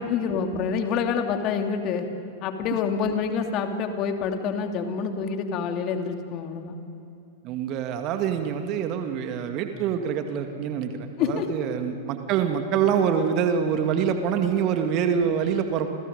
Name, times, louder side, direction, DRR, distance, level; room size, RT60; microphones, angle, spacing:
voice 1, 0.0-2.1 2.4-6.8 11.2-11.5, left 6 dB, 40° left, 5 dB, 2.7 m, -27 dB
voice 2, 7.4-15.9, right 7 dB, 40° right, 6 dB, 2.0 m, -25 dB
29.5 x 28.0 x 5.3 m, 2.8 s
figure-of-eight pair, 90°, 0 cm